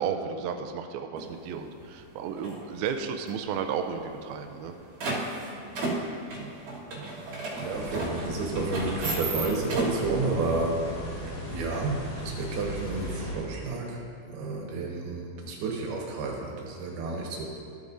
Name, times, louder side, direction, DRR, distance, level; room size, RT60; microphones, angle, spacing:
voice 1, 0.0-4.8, right 7 dB, 90° right, 5 dB, 2.2 m, -33 dB
sound 1, 1.2-1.3 1.8-2.1 2.4-3.3 3.6-3.7 3.9-4.0 4.4-10.1, right 2 dB, 55° right, 2.6 m, -33 dB
voice 2, 7.6-10.9 11.2-14.0 14.3-17.5, right 3 dB, 70° right, -1 dB, 3.1 m, -31 dB
sound 2, 7.7-13.4, left 1 dB, 60° left, 1.5 m, -37 dB
14.0 x 8.3 x 2.6 m, 2.5 s
omnidirectional pair, 4.9 m